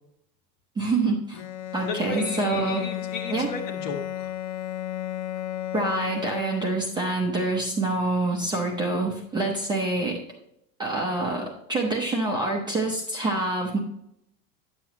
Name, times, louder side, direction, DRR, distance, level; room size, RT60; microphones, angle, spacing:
voice 1, 0.8-1.4 1.7-2.8 3.3-3.5 5.7-10.2 10.8-13.8, right 2 dB, 10° right, -2 dB, 0.6 m, -26 dB
Bowed string instrument, 1.3-7.1, left 12 dB, 90° left, 0.8 m, -34 dB
voice 2, 1.8-4.3, left 4 dB, 40° left, 4 dB, 1.5 m, -34 dB
9.7 x 7.6 x 2.9 m, 0.77 s
cardioid pair, 175°, 42 cm